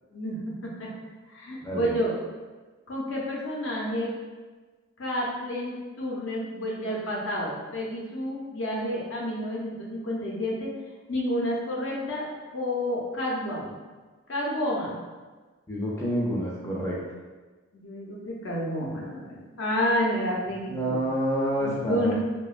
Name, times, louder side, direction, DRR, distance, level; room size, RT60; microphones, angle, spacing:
voice 1, 0.1-0.9 1.3-2.1 2.9-4.1 5.0-10.7 11.1-12.3 12.5-13.7 14.3-15.0 17.7-21.0 21.6-22.1, equal, 60° left, -3 dB, 0.6 m, -30 dB
voice 2, 15.7-17.0 20.7-22.1, equal, 15° left, -4 dB, 0.4 m, -28 dB
2.8 x 2.2 x 2.4 m, 1.3 s
head